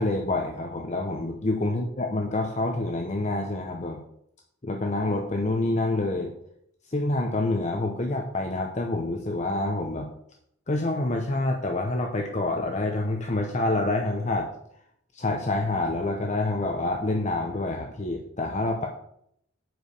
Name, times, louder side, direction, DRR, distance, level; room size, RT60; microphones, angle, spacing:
voice 1, 0.0-4.0 4.6-6.3 6.9-10.1 10.7-14.5 15.1-18.9, left 2 dB, 35° left, 2 dB, 0.8 m, -27 dB
7.9 x 5.0 x 6.5 m, 0.71 s
head